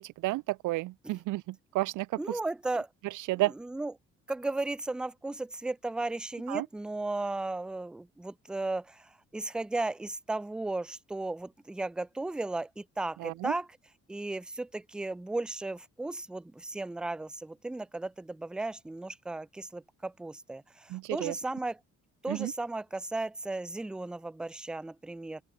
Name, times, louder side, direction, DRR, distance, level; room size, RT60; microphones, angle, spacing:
voice 1, 0.0-2.4 3.1-3.5 6.5-6.7 13.2-13.5 20.9-21.3 22.3-22.5, right 19 dB, 80° right, 0.5 m, -32 dB
voice 2, 2.2-2.9 3.3-3.9 4.3-13.7 14.1-21.8 22.2-25.4, right 2 dB, 5° right, 0.3 m, -35 dB
open air
cardioid pair, 90°, 30 cm